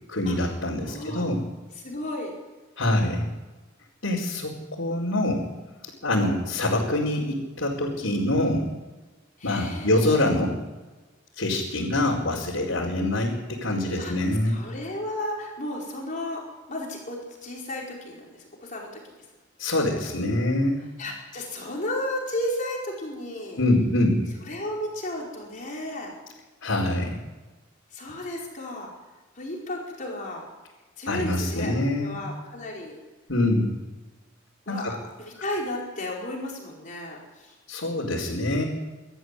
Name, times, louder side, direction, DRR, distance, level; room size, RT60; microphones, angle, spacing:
voice 1, 0.1-1.4 2.8-3.3 4.0-5.4 6.0-8.7 9.4-10.6 11.4-14.6 19.6-20.8 23.6-24.2 26.6-27.2 31.1-32.2 33.3-33.8 34.7-34.9 37.7-38.6, left 1 dB, 80° left, -5 dB, 4.7 m, -25 dB
voice 2, 0.8-1.3 1.8-2.3 9.4-10.1 13.7-14.1 14.4-16.4 16.7-18.2 18.6-19.0 21.0-23.6 24.4-26.1 27.9-28.9 29.4-30.4 31.0-33.0 34.7-37.5, left 1 dB, 40° left, -2 dB, 4.8 m, -33 dB
25.0 x 13.5 x 9.8 m, 1.2 s
head